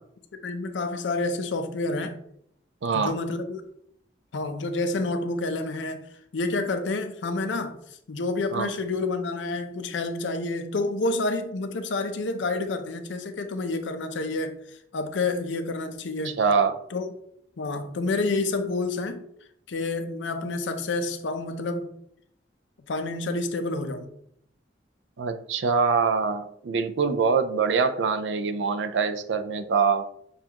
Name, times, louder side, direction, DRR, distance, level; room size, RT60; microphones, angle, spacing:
voice 1, 0.3-2.2 2.9-3.6 4.3-6.1 6.3-7.8 8.1-14.6 14.9-16.4 16.9-17.1 17.6-19.3 19.7-21.9 22.9-24.1, left 3 dB, 85° left, 0.5 m, -29 dB
voice 2, 2.8-3.2 8.5-8.7 16.2-16.8 25.2-30.1, right 5 dB, 75° right, 0.4 m, -24 dB
6.4 x 2.4 x 2.9 m
head